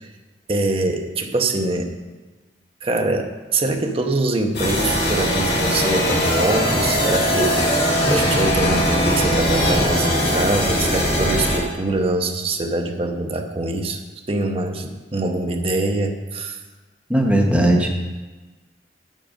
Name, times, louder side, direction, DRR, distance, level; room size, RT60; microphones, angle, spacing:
voice 1, 0.5-1.9 2.8-14.0 14.3-16.6, right 2 dB, 35° right, 4 dB, 0.8 m, -24 dB
sound 1, 4.5-11.6, equal, 65° left, 2.6 m, -20 dB
voice 2, 17.1-17.9, right 1 dB, 5° right, -1 dB, 1.2 m, -17 dB
9.2 x 7.4 x 5.2 m, 1.2 s
head